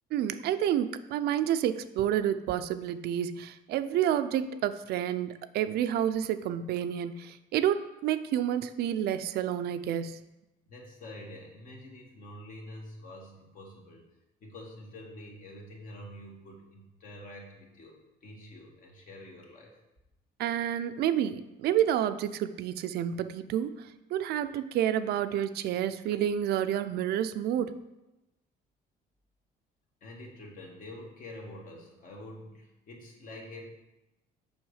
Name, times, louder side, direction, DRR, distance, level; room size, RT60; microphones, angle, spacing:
voice 1, 0.1-10.2 20.4-27.8, right 10 dB, 70° right, 11 dB, 0.5 m, -29 dB
voice 2, 10.7-14.0 14.4-19.8 30.0-33.7, left 1 dB, 55° left, 0 dB, 1.8 m, -47 dB
6.2 x 5.5 x 4.9 m, 0.95 s
cardioid pair, 110°, 17 cm